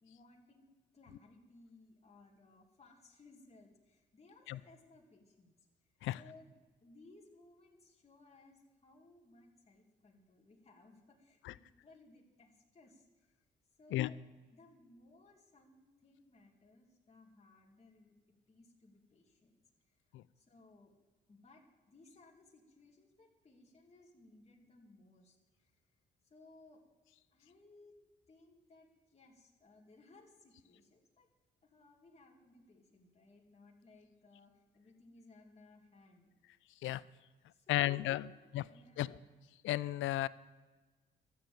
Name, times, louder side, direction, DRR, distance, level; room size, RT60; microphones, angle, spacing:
voice 1, 0.0-0.7 0.9-5.6 6.1-6.5 6.8-13.3 13.8-14.2 14.5-18.1 18.5-19.6 19.9-20.0 20.4-20.9 21.3-25.7 26.2-26.8 27.3-28.0 28.3-31.3 31.6-36.3 37.5-39.2, left 2 dB, 30° left, -1 dB, 2.4 m, -62 dB
voice 2, 37.7-38.3 38.5-38.6 39.0-39.1 39.6-40.3, left 15 dB, 80° left, 19 dB, 0.5 m, -33 dB
13.0 x 7.2 x 8.6 m, 1.3 s
cardioid pair, 90°, 20 cm